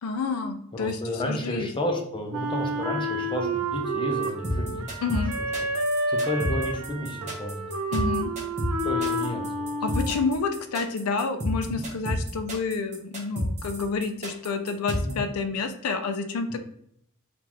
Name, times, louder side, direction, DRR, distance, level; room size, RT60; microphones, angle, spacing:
voice 1, 0.0-1.0 1.3-1.7 5.0-5.3 7.9-8.3 9.8-16.6, left 4 dB, 80° left, 8 dB, 0.4 m, -29 dB
voice 2, 0.7-5.0 5.4-5.5 6.1-7.6 8.8-9.7 11.6-11.9 15.0-15.2 16.5-16.6, left 1 dB, 25° left, 2 dB, 0.6 m, -31 dB
Wind instrument woodwind instrument, 2.3-10.5, right 1 dB, 85° right, 0.6 m, -30 dB
sound 1, 4.2-15.1, equal, 35° right, 0.9 m, -31 dB
3.7 x 2.4 x 2.9 m, 0.71 s
head